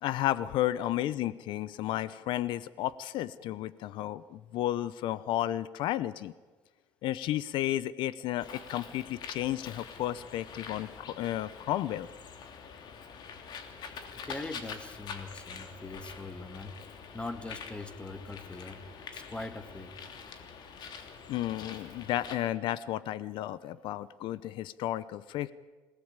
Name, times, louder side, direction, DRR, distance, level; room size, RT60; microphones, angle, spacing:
voice 1, 0.0-6.3 7.0-12.1 21.3-25.5, left 13 dB, 75° left, 17 dB, 0.8 m, -32 dB
Bird, 8.4-22.4, left 6 dB, 60° left, 3.0 m, -45 dB
voice 2, 14.2-16.7 17.1-18.8 19.1-19.9, left 2 dB, 10° left, 10 dB, 1.9 m, -41 dB
26.5 x 18.0 x 8.9 m, 1.3 s
cardioid pair, 120°, 8 cm